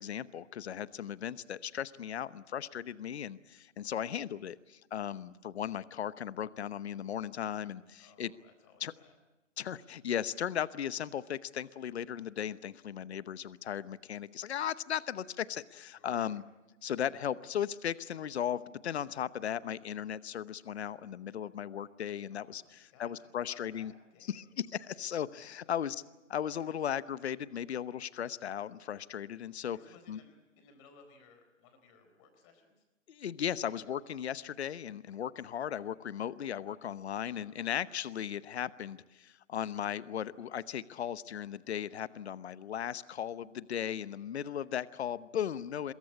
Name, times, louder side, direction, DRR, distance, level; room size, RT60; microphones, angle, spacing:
voice 1, 0.0-8.3 8.8-8.9 9.6-16.4 16.8-22.6 23.0-23.9 24.3-24.4 24.8-26.0 26.3-29.8 30.1-30.2 33.1-45.9, left 9 dB, 55° left, 17 dB, 1.0 m, -37 dB
voice 2, 3.9-4.2 7.9-9.2 15.9-16.4 22.3-24.5 25.2-26.0 29.7-32.9 37.3-37.6, left 5 dB, 25° left, 7 dB, 4.1 m, -61 dB
23.5 x 22.5 x 8.6 m, 1.1 s
hypercardioid pair, 160°, 39 cm